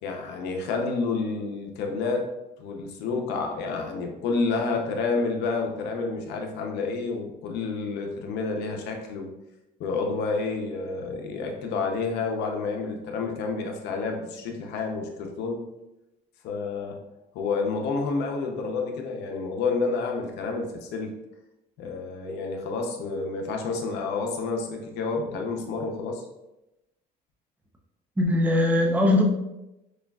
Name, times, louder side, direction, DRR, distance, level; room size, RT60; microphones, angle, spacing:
voice 1, 0.0-2.3 2.6-9.3 9.8-15.6 16.4-17.0 17.3-21.1 21.8-26.2, left 4 dB, 85° left, 2 dB, 0.7 m, -29 dB
voice 2, 28.2-29.2, left 1 dB, 10° right, 0 dB, 0.6 m, -20 dB
6.3 x 2.4 x 2.3 m, 0.93 s
cardioid pair, 110°, 17 cm